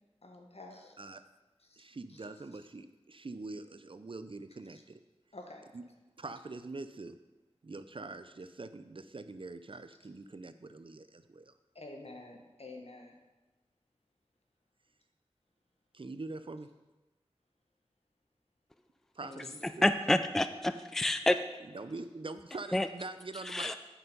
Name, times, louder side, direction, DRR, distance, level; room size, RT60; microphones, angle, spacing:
voice 1, 0.2-0.9 1.7-1.8 5.3-5.7 11.7-13.2 19.2-19.6, left 2 dB, 70° left, 2 dB, 1.3 m, -48 dB
voice 2, 1.8-5.0 5.7-5.8 6.2-7.2 7.6-11.5 15.9-16.7 19.1-19.9 21.7-23.8, right 3 dB, 55° right, 11 dB, 0.5 m, -44 dB
voice 3, 19.8-21.4 22.7-22.9 23.5-23.8, left 1 dB, 5° left, 10 dB, 0.3 m, -28 dB
8.3 x 5.6 x 5.3 m, 1.1 s
wide cardioid pair, 50°, 11 cm